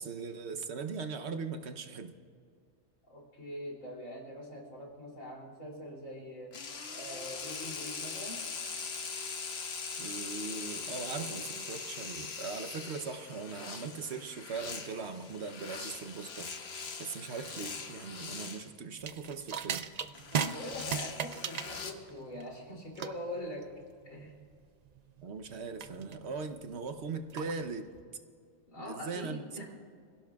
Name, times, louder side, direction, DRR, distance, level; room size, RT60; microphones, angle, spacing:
voice 1, 0.0-2.1 10.0-16.7 17.0-19.9 25.2-27.9 28.8-29.6, right 4 dB, 60° right, 8 dB, 1.1 m, -40 dB
voice 2, 3.0-6.5 6.9-8.4 20.3-23.7 24.0-24.4 28.7-29.6, equal, 80° left, -3 dB, 3.5 m, -43 dB
sound 1, 6.5-18.7 20.1-21.9, left 5 dB, 55° left, 1.2 m, -41 dB
sound 2, 19.0-28.0, right 7 dB, 85° right, 0.3 m, -39 dB
25.5 x 16.5 x 2.4 m, 2.3 s
omnidirectional pair, 1.4 m